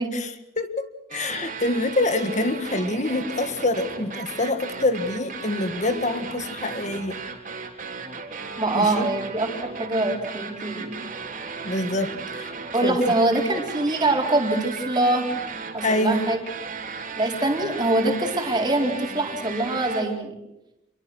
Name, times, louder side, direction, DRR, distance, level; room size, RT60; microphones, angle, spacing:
voice 1, 0.1-7.2 8.7-9.1 11.6-12.6 12.8-13.0 15.8-16.3, left 2 dB, 40° left, 10 dB, 1.8 m, -26 dB
sound 1, 1.1-20.0, right 4 dB, 45° right, 3.5 m, -36 dB
voice 2, 8.6-11.0 12.7-15.3 15.7-16.4 17.2-20.4, right 2 dB, 25° right, 1 dB, 4.2 m, -24 dB
28.5 x 23.0 x 6.4 m, 0.92 s
head